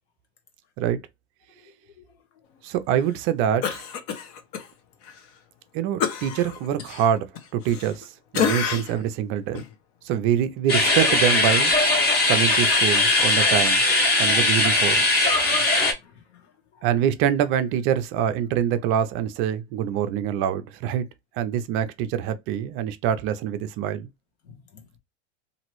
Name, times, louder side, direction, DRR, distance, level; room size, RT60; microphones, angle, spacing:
voice 1, 2.6-3.8 5.7-7.3 7.5-9.7 10.0-11.7 12.3-13.8 14.2-15.0 16.8-21.1 21.4-24.1, right 9 dB, 40° right, 0.4 m, -25 dB
Cough, 3.6-4.7 5.0-5.2 6.0-8.0 8.3-9.1 9.5-9.7, left 8 dB, 50° left, 0.8 m, -28 dB
sound 1, 10.7-15.9, left 2 dB, 30° left, 1.0 m, -20 dB
voice 2, 15.4-16.8 24.5-24.8, left 7 dB, 75° left, 1.0 m, -51 dB
2.9 x 2.6 x 2.9 m
supercardioid pair, 125°, 34 cm